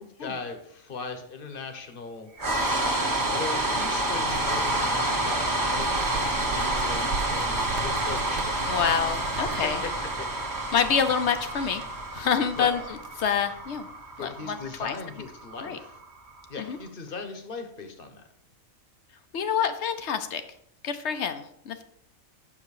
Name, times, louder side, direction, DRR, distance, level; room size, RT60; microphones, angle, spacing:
voice 1, 0.2-2.3 3.3-8.7 9.4-9.9 10.2-10.7 12.5-12.7 14.2-16.0 16.5-18.2, left 4 dB, 45° left, 6 dB, 1.2 m, -38 dB
sound 1, 2.4-16.5, right 1 dB, 15° right, 1.1 m, -28 dB
sound 2, 4.2-9.9, right 5 dB, 65° right, 0.8 m, -38 dB
voice 2, 8.7-9.8 10.7-11.8 12.1-13.9 14.2-15.0 15.6-15.8 16.6-16.8 19.3-20.4 20.8-21.8, left 7 dB, 65° left, 9 dB, 0.9 m, -27 dB
7.3 x 6.3 x 4.8 m, 0.73 s
omnidirectional pair, 1.4 m